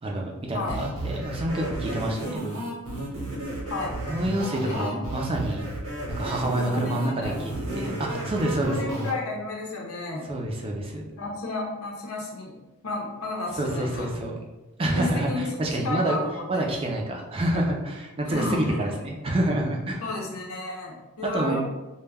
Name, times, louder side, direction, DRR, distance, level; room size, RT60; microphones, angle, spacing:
voice 1, 0.0-2.5 4.0-5.6 6.1-9.0 10.3-11.0 13.6-14.4 14.8-16.2 16.5-20.1 21.3-21.6, right 1 dB, 25° right, 0 dB, 0.4 m, -27 dB
sound 1, 0.7-9.1, right 1 dB, 75° right, 0.9 m, -33 dB
voice 2, 4.6-4.9 6.7-7.3 8.6-10.3 11.2-12.5 12.8-14.1 15.0-15.4 15.8-16.5 18.3-18.8 20.0-21.6, left 2 dB, 75° left, -1 dB, 0.6 m, -32 dB
2.2 x 2.1 x 3.3 m, 1.1 s
head